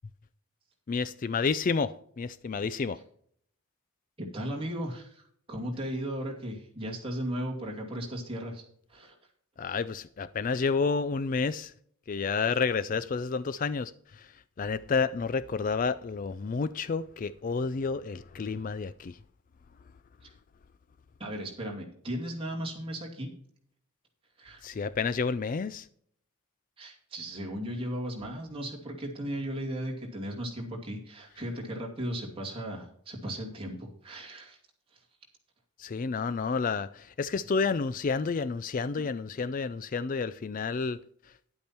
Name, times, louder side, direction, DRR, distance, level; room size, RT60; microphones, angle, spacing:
voice 1, 0.9-3.0 9.6-11.7 12.1-19.2 24.6-25.9 35.8-41.0, left 5 dB, 40° left, 0.3 m, -30 dB
voice 2, 4.2-5.2 5.5-8.6 8.9-9.2 21.2-23.3 24.4-24.6 26.8-34.6, equal, 25° right, 2.5 m, -36 dB
10.5 x 8.5 x 4.4 m
head